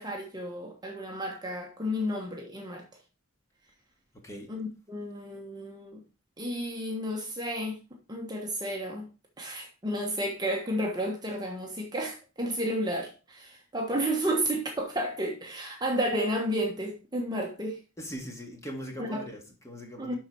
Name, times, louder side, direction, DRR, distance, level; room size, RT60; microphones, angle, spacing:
voice 1, 0.0-2.8 4.5-6.0 6.4-7.8 8.1-9.0 9.4-17.8 19.0-19.2 20.0-20.1, equal, 20° right, 1.2 m, -32 dB
voice 2, 18.0-20.2, equal, 15° left, 1.9 m, -40 dB
11.5 x 4.4 x 4.5 m
head